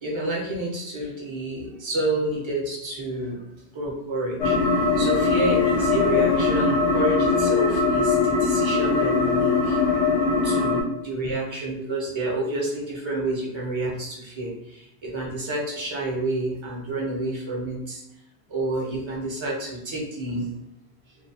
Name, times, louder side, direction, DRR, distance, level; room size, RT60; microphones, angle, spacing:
voice 1, 0.0-3.4 3.7-9.8 10.4-18.0 18.5-20.5, right 2 dB, 35° right, -4 dB, 0.5 m, -29 dB
sound 1, 4.4-10.8, left 4 dB, 85° left, 0.9 m, -21 dB
2.4 x 2.2 x 2.7 m, 0.88 s
omnidirectional pair, 1.2 m